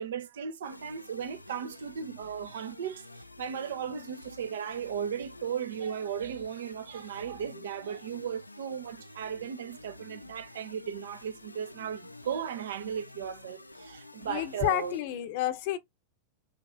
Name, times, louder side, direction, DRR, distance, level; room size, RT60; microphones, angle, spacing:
voice 1, 0.0-3.1 3.4-14.9, right 8 dB, 60° right, 0.5 m, -36 dB
sound 1, 0.6-15.0, left 2 dB, 85° left, 0.4 m, -49 dB
voice 2, 14.2-15.8, left 13 dB, 50° left, 0.7 m, -30 dB
5.6 x 2.5 x 2.3 m
figure-of-eight pair, 90°, 0 cm